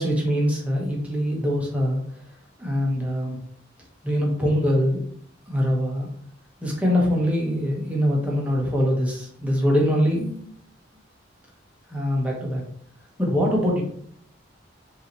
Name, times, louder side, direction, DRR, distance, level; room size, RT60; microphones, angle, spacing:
voice 1, 0.0-2.0 2.6-3.4 4.0-5.0 5.5-6.1 6.6-10.5 11.9-12.6 13.2-13.8, equal, 5° right, -2 dB, 1.0 m, -23 dB
5.3 x 2.8 x 3.1 m, 0.64 s
head